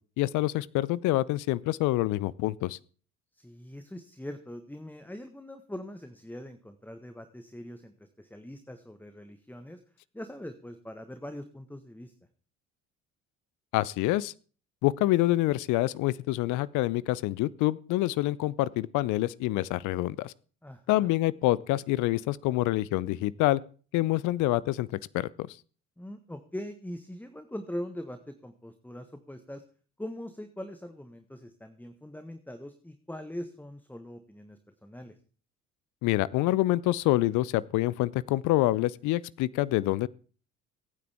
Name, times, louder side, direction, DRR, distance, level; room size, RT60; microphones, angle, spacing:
voice 1, 0.2-2.8 13.7-14.3 14.8-20.3 20.9-23.6 23.9-24.9 25.1-25.6 36.0-40.1, left 17 dB, 50° left, 0.6 m, -26 dB
voice 2, 3.3-9.8 10.1-12.1 20.6-21.1 26.0-29.6 30.0-35.1, left 1 dB, 5° left, 1.4 m, -42 dB
23.5 x 9.4 x 3.5 m
figure-of-eight pair, 55°, 38 cm